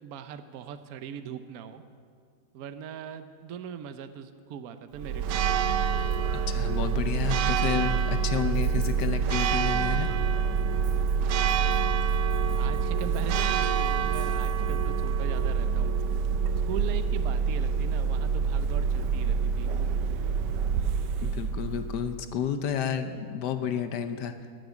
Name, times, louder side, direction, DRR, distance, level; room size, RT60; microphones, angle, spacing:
voice 1, 0.0-1.8 2.5-5.4 12.6-15.9 16.7-19.7, right 8 dB, 65° right, 10 dB, 1.1 m, -39 dB
Church bell, 5.0-22.2, right 6 dB, 90° right, 1.3 m, -26 dB
voice 2, 6.5-10.1 21.2-24.3, left 8 dB, 80° left, 9 dB, 1.4 m, -31 dB
12.0 x 9.4 x 9.0 m, 2.1 s
omnidirectional pair, 1.8 m